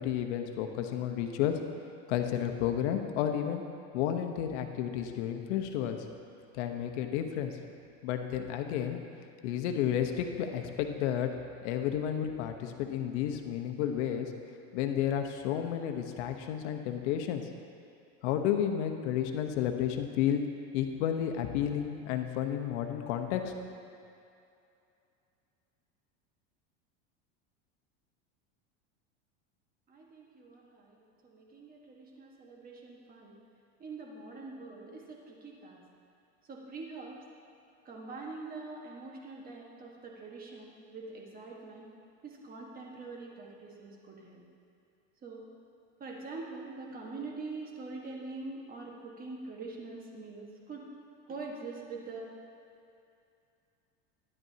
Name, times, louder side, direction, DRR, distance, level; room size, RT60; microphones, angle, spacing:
voice 1, 0.0-1.6 2.1-3.6 3.9-6.0 6.5-7.5 8.0-9.0 9.4-11.3 11.6-14.3 14.7-17.4 18.2-20.4 20.7-23.8, left 10 dB, 70° left, 5 dB, 1.0 m, -31 dB
voice 2, 29.9-31.0 31.2-33.3 33.8-35.8 36.5-37.2 37.8-41.9 42.2-44.4 45.2-45.4 46.0-50.8 51.3-52.3, right 3 dB, 25° right, -1 dB, 1.4 m, -44 dB
12.0 x 10.5 x 2.8 m, 2.6 s
supercardioid pair, 130°, 35 cm